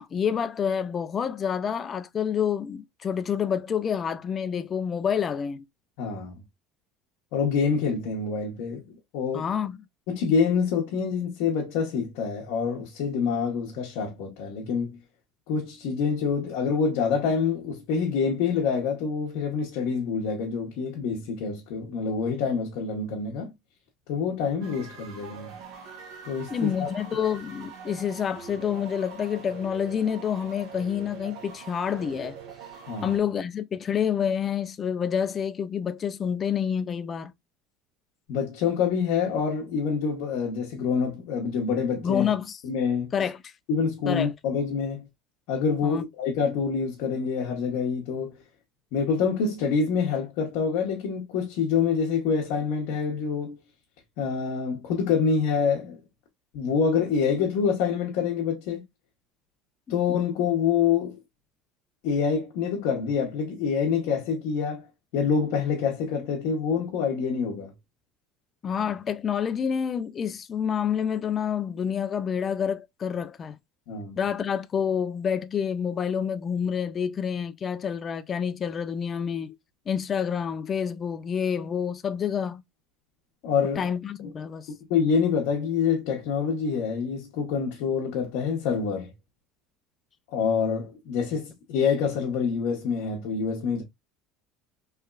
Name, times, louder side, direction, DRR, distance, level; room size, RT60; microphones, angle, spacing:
voice 1, 0.0-5.6 9.3-9.8 26.5-32.3 33.0-37.3 42.0-42.6 43.1-43.4 44.1-44.3 45.8-46.0 68.6-73.6 74.2-79.6 79.9-82.6 83.8-84.7, left 7 dB, 30° left, 0.4 m, -28 dB
voice 2, 6.0-6.4 7.3-9.4 10.1-15.0 15.5-23.5 24.1-25.5 26.3-27.0 32.9-33.2 38.3-42.3 42.6-43.1 43.7-45.1 45.5-48.4 48.9-53.6 54.2-56.0 56.5-58.8 59.9-61.2 62.0-64.9 65.1-67.7 73.9-74.2 83.4-83.8 84.9-89.1 90.3-93.8, left 6 dB, 75° left, 0.9 m, -26 dB
sound 1, 24.6-33.2, right 7 dB, 70° right, 1.4 m, -43 dB
3.4 x 3.2 x 2.3 m
cardioid pair, 140°, 0 cm